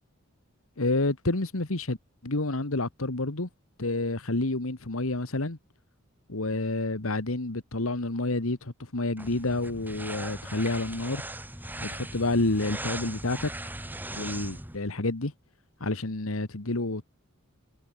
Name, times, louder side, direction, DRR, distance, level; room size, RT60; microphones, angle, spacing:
voice 1, 0.8-2.0 2.2-3.5 3.8-5.6 6.3-11.2 11.8-13.5 14.1-15.3 15.8-17.0, left 2 dB, 80° left, 1.8 m, -29 dB
sound 1, 9.2-14.8, right 1 dB, 10° right, 6.4 m, -39 dB
head